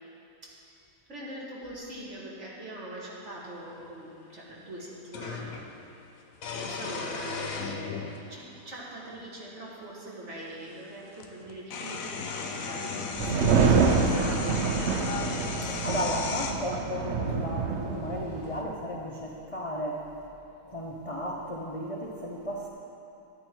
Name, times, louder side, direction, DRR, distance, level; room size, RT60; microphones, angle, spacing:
voice 1, 1.1-5.5 6.5-7.9 8.3-15.3 15.6-15.7, right 1 dB, 45° right, -5 dB, 2.1 m, -42 dB
sound 1, 3.4-3.5 5.1-5.7 6.4-8.2 9.1-9.2 10.7-10.8 11.1-16.5, left 5 dB, 60° left, 1.1 m, -35 dB
sound 2, 13.2-18.6, right 5 dB, 60° right, 0.7 m, -26 dB
voice 2, 15.8-20.0 20.7-22.7, equal, 35° left, -3 dB, 0.5 m, -34 dB
11.5 x 9.7 x 4.6 m, 2.7 s
omnidirectional pair, 1.8 m